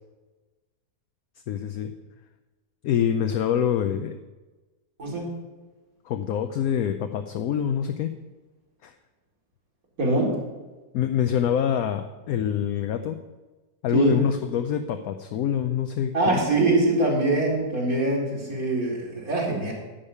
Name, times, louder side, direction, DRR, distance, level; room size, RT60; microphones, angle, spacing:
voice 1, 1.5-1.9 2.8-4.2 6.0-8.1 8.8-8.9 10.9-13.2 13.8-16.2, left 9 dB, 70° left, 8 dB, 1.0 m, -25 dB
voice 2, 5.0-5.3 10.0-10.3 13.9-14.2 16.1-19.7, right 2 dB, 60° right, -3 dB, 3.1 m, -23 dB
11.0 x 5.2 x 8.4 m, 1.2 s
omnidirectional pair, 1.7 m